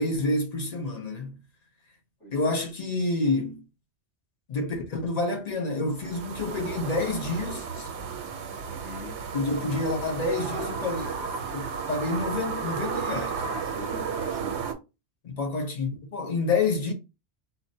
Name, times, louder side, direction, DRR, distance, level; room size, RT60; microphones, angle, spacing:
voice 1, 0.0-1.4 2.3-3.6 4.5-7.9 9.3-11.1 11.5-13.4 15.2-16.9, left 3 dB, 45° left, 0.7 m, -28 dB
voice 2, 2.2-2.6 8.7-9.2 13.4-14.7, equal, 70° left, 2.1 m, -42 dB
sound 1, 5.9-14.7, right 6 dB, 85° right, 0.9 m, -33 dB
4.1 x 2.1 x 2.7 m
omnidirectional pair, 1.1 m